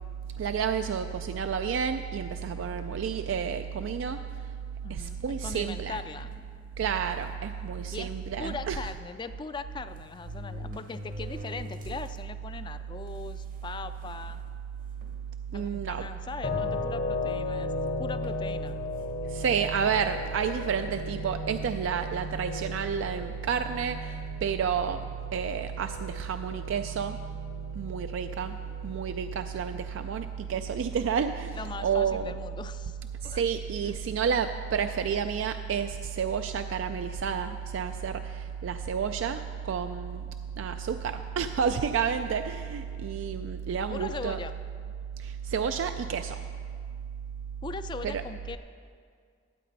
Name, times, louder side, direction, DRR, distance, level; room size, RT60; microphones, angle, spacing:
voice 1, 0.4-4.2 4.9-6.0 6.8-8.8 15.5-16.0 16.6-16.7 19.3-25.0 25.3-27.2 27.7-28.6 28.8-32.3 33.3-40.2 40.6-44.4 45.2-46.4 48.0-48.2, right 7 dB, 85° right, 8 dB, 0.3 m, -30 dB
voice 2, 4.8-6.3 7.9-14.4 15.5-18.8 31.5-33.0 33.2-33.4 43.9-44.5 47.6-48.6, left 4 dB, 25° left, 11 dB, 0.3 m, -40 dB
sound 1, 6.3-6.6 7.3-7.4 7.7-7.8 9.1-9.2 9.9-12.2 12.6-12.7 13.6-13.7 14.0-14.4 15.0-15.2 16.4-17.3 18.2-18.5, equal, 45° right, 0.8 m, -43 dB
sound 2, 16.4-29.4, left 3 dB, 50° left, 0.8 m, -37 dB
13.0 x 8.3 x 4.0 m, 2.1 s
head